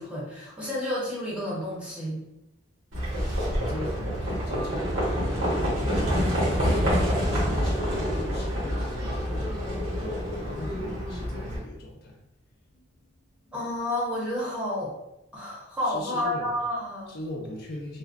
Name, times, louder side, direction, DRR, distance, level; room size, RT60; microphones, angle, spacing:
voice 1, 0.0-2.2 13.5-14.9 15.3-17.2, left 1 dB, 5° right, -7 dB, 0.7 m, -30 dB
Livestock farm animals working animals, 2.9-11.6, equal, 70° right, 1.0 m, -27 dB
voice 2, 3.5-12.2 12.7-12.9 13.4-13.5 15.8-16.5 17.1-18.0, left 1 dB, 50° left, -2 dB, 0.4 m, -39 dB
2.4 x 2.1 x 2.3 m, 0.89 s
head